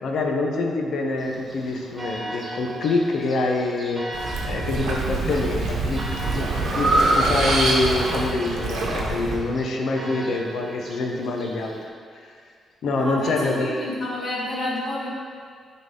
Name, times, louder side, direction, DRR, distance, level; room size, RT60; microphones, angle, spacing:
voice 1, 0.0-4.0 4.4-6.0 6.3-11.7 12.1-12.3 12.8-13.8, left 3 dB, 65° left, 2 dB, 0.8 m, -25 dB
Church bell, 1.2-11.9, right 1 dB, 10° right, 1.1 m, -38 dB
sound 1, 4.1-9.4, right 3 dB, 85° right, 1.1 m, -27 dB
Breathing, 4.9-5.4 5.9-8.2, right 1 dB, 50° right, 1.1 m, -23 dB
voice 2, 12.9-15.1, left 1 dB, 40° left, -6 dB, 1.7 m, -29 dB
9.0 x 3.9 x 3.8 m, 2.1 s
cardioid pair, 155°, 0 cm